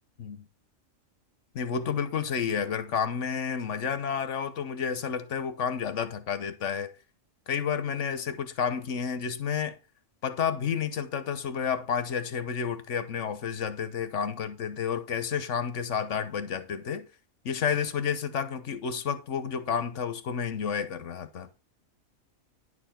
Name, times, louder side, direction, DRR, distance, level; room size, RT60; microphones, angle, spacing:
voice 1, 1.5-6.9 7.5-9.8 10.2-17.1 17.4-21.5, left 7 dB, 60° left, 1.3 m, -30 dB
10.5 x 7.0 x 4.3 m
omnidirectional pair, 1.4 m